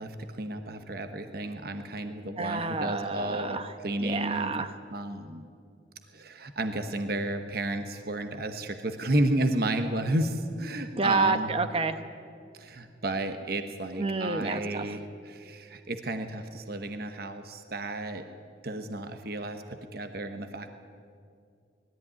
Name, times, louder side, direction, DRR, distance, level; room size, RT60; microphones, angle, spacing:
voice 1, 0.0-3.6 3.8-4.5 4.9-5.5 6.1-11.5 12.5-18.2 18.6-20.7, right 1 dB, 55° right, 7 dB, 1.1 m, -32 dB
voice 2, 2.4-4.7 11.0-12.0 14.0-14.9, right 3 dB, 30° right, 9 dB, 1.0 m, -29 dB
20.5 x 14.0 x 9.7 m, 2.4 s
head